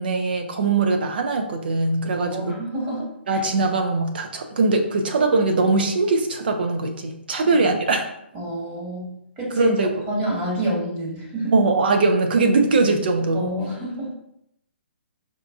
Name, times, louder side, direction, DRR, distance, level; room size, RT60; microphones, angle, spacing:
voice 1, 0.0-2.5 3.3-8.1 9.6-10.0 11.5-13.5, right 3 dB, 55° right, 4 dB, 0.6 m, -21 dB
voice 2, 2.2-3.0 3.3-3.4 7.6-7.7 8.3-9.1 9.4-9.7 10.1-11.6 13.3-14.1, right 1 dB, 30° right, -4 dB, 1.4 m, -28 dB
5.1 x 2.3 x 2.4 m, 0.76 s
figure-of-eight pair, 130°, 6 cm